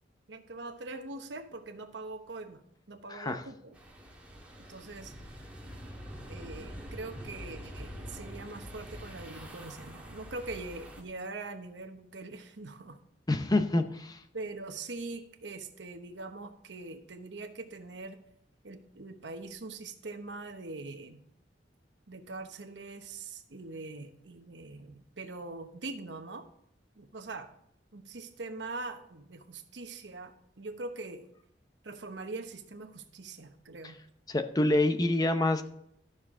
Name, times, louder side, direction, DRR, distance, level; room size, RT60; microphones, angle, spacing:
voice 1, 0.3-2.6 2.9-3.8 4.6-5.3 6.3-13.0 14.3-18.2 18.6-21.2 22.1-26.5 27.0-27.5 27.9-31.3 31.8-34.0, right 3 dB, 80° right, 6 dB, 1.0 m, -42 dB
voice 2, 3.1-3.4 13.3-14.2 34.3-35.6, left 2 dB, 20° left, 8 dB, 0.7 m, -27 dB
sound 1, 3.7-11.0, equal, 10° right, 1.7 m, -45 dB
12.5 x 6.6 x 3.7 m, 0.72 s
head